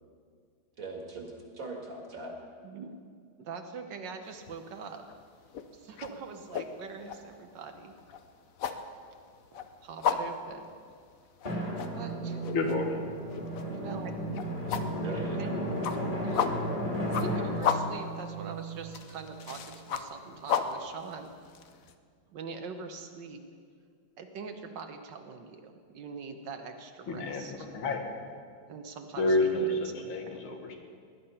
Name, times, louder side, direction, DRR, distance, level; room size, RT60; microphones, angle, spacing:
voice 1, 0.8-2.3 15.0-15.5, right 3 dB, 45° right, 1 dB, 2.2 m, -40 dB
voice 2, 2.6-3.0 3.4-5.0 5.7-7.9 9.5-10.7 11.9-12.4 13.7-14.1 14.7-14.9 15.4-15.6 16.2-16.5 17.1-21.3 22.3-23.4 24.2-27.7 28.7-30.5, right 5 dB, 65° right, 6 dB, 1.5 m, -43 dB
sound 1, 4.3-4.7 5.0-21.9, left 7 dB, 60° left, 0.9 m, -34 dB
Drum, 11.4-19.7, right 1 dB, 20° left, 2.4 m, -34 dB
voice 3, 12.5-13.1 27.1-28.0 29.2-30.7, left 2 dB, 80° left, 3 dB, 2.3 m, -29 dB
18.5 x 10.5 x 5.6 m, 2.1 s
omnidirectional pair, 2.2 m